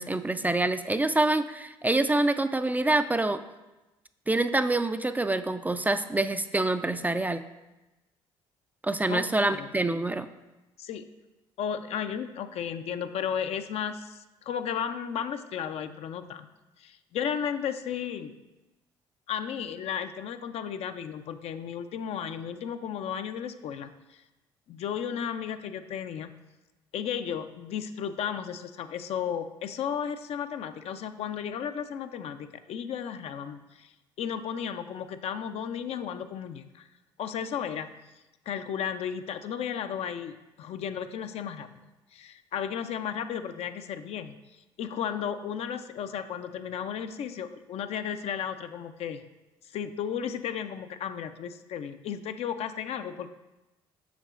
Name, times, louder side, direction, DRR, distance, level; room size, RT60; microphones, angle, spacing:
voice 1, 0.0-3.4 4.3-7.4 8.8-10.3, right 2 dB, 15° right, 10 dB, 0.3 m, -26 dB
voice 2, 10.8-11.1 11.6-16.5 16.8-18.3 19.3-24.2 24.7-26.3 26.9-33.9 34.2-36.9 37.2-38.0 38.5-41.7 42.1-44.4 44.8-49.2 49.6-53.3, left 8 dB, 55° left, 9 dB, 0.4 m, -34 dB
7.0 x 6.5 x 2.4 m, 1.0 s
hypercardioid pair, 55°, 12 cm